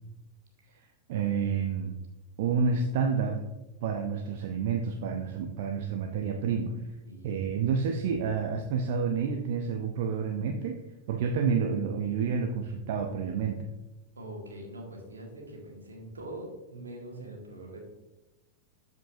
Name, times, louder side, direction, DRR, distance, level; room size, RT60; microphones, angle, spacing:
voice 1, 0.7-2.0 2.4-3.4 3.8-6.8 7.2-10.8 11.1-13.7, right 6 dB, 50° right, 4 dB, 0.6 m, -29 dB
voice 2, 7.1-7.6 14.2-17.8, right 1 dB, 75° right, 0 dB, 2.1 m, -43 dB
12.5 x 5.3 x 2.7 m, 1.1 s
figure-of-eight pair, 90°, 0 cm